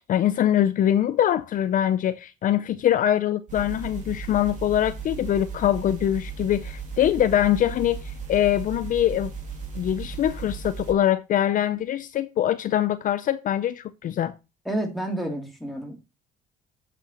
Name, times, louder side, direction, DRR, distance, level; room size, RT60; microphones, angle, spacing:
voice 1, 0.1-9.3 9.7-14.3, left 11 dB, 55° left, 0.6 m, -23 dB
sound 1, 3.5-10.9, right 5 dB, 45° right, 2.8 m, -36 dB
voice 2, 14.6-15.9, right 1 dB, ahead, 3.0 m, -29 dB
8.1 x 6.0 x 4.3 m
cardioid pair, 110°, 17 cm